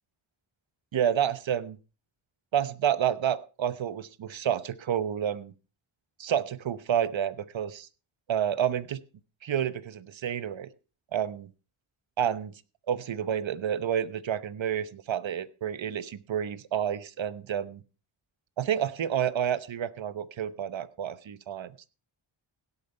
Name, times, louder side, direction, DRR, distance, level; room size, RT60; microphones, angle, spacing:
voice 1, 0.9-1.8 2.5-5.5 6.2-7.9 8.3-9.0 9.4-10.7 11.1-11.5 12.2-12.5 12.9-17.8 18.6-21.7, right 9 dB, 65° right, 16 dB, 1.0 m, -29 dB
17.0 x 8.2 x 4.4 m, 0.33 s
wide cardioid pair, 100°, 49 cm